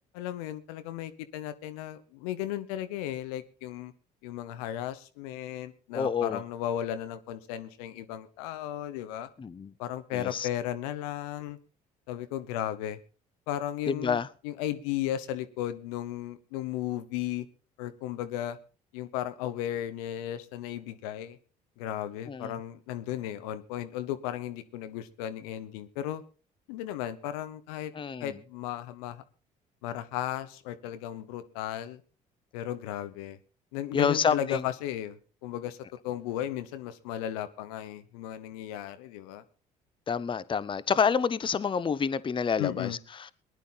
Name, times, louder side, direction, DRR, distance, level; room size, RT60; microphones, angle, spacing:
voice 1, 0.1-3.9 4.2-9.3 9.8-11.6 12.1-13.0 13.5-17.5 17.8-18.6 18.9-21.4 21.8-26.2 26.7-27.9 28.2-29.2 29.8-32.0 32.5-33.4 33.7-35.8 36.0-39.4 42.6-43.0, left 12 dB, 75° left, 1.0 m, -35 dB
voice 2, 5.9-6.4 9.4-9.7 10.1-10.5 13.9-14.3 22.3-22.5 27.9-28.3 33.9-34.6 40.1-43.3, left 6 dB, 25° left, 0.7 m, -28 dB
19.5 x 10.5 x 3.9 m
hypercardioid pair, 55°, 19 cm